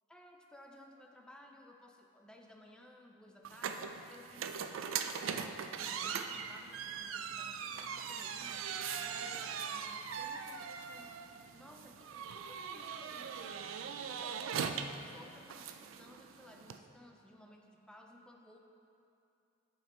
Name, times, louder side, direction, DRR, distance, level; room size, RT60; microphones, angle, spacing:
voice 1, 0.1-8.6 9.0-11.1 11.5-18.6, left 1 dB, 5° left, 2 dB, 0.4 m, -58 dB
sound 1, 3.4-16.8, right 7 dB, 85° right, 0.4 m, -41 dB
6.2 x 5.9 x 4.3 m, 2.8 s
head